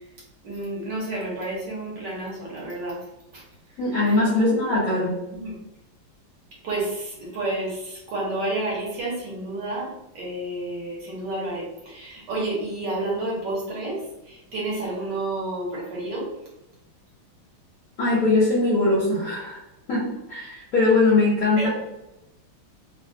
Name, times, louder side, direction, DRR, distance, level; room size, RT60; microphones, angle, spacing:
voice 1, 0.4-3.0 3.3-3.4 4.0-4.1 4.4-4.5 5.3-5.6 6.6-9.9 10.1-16.3 21.6-21.7, right 2 dB, 65° right, -4 dB, 1.3 m, -30 dB
voice 2, 3.8-5.2 18.0-19.6 19.9-21.7, left 2 dB, 70° left, -6 dB, 0.8 m, -21 dB
3.2 x 2.2 x 2.5 m, 0.93 s
omnidirectional pair, 2.3 m